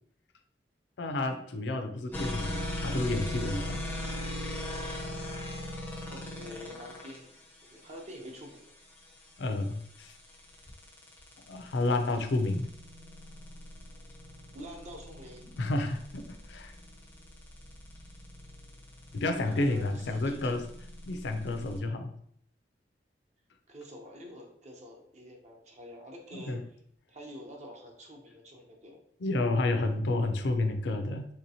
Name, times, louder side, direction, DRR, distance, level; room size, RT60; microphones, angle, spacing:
voice 1, 1.0-3.8 9.4-10.2 11.5-12.7 15.6-16.7 19.1-20.7 21.1-22.2 26.3-26.6 29.2-31.3, left 2 dB, 85° left, 7 dB, 0.4 m, -30 dB
voice 2, 2.0-2.5 6.1-8.6 14.5-15.5 19.5-20.6 23.7-26.6 27.1-29.0, equal, 40° right, 1 dB, 0.6 m, -47 dB
sound 1, 2.1-21.8, left 1 dB, 10° left, 0.5 m, -40 dB
3.3 x 2.8 x 2.7 m, 0.66 s
head